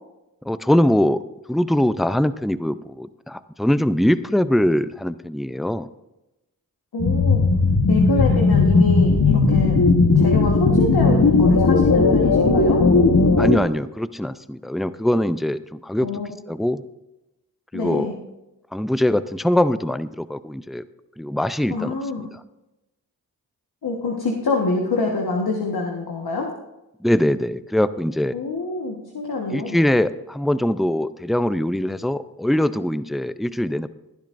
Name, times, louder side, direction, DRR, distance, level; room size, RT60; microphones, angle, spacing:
voice 1, 0.4-1.2 1.5-5.9 8.1-8.2 13.4-16.1 16.5-16.8 17.7-18.1 18.7-20.9 21.2-22.3 27.0-28.3 29.5-33.9, left 1 dB, ahead, 14 dB, 0.5 m, -22 dB
voice 2, 6.9-7.5 7.9-9.8 10.1-12.8 16.0-16.3 17.7-18.1 21.7-22.3 23.8-26.5 28.3-29.8, left 3 dB, 75° left, 0 dB, 1.5 m, -26 dB
sound 1, 7.0-13.6, left 3 dB, 55° left, 1.3 m, -16 dB
18.5 x 10.5 x 2.6 m, 0.95 s
cardioid pair, 40°, 37 cm